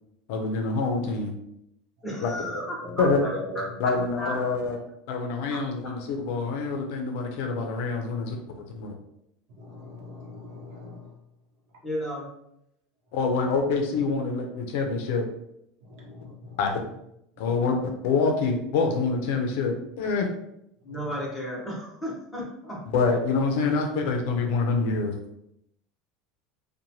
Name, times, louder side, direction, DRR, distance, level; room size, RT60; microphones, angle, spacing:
voice 1, 0.3-1.3 2.2-2.3 3.0-3.2 3.8-4.8 5.1-8.9 13.1-15.2 16.6-16.8 17.4-17.7 18.0-20.3 22.9-25.1, left 4 dB, 65° left, 3 dB, 0.5 m, -26 dB
voice 2, 2.0-3.3 3.8-4.6 5.5-5.6 11.8-12.3 20.8-22.8, equal, 5° left, -5 dB, 0.8 m, -34 dB
voice 3, 3.2-3.7 9.6-11.0 16.0-16.6, left 1 dB, 60° right, -2 dB, 0.9 m, -38 dB
2.9 x 2.2 x 2.7 m, 0.78 s
cardioid pair, 165°, 0 cm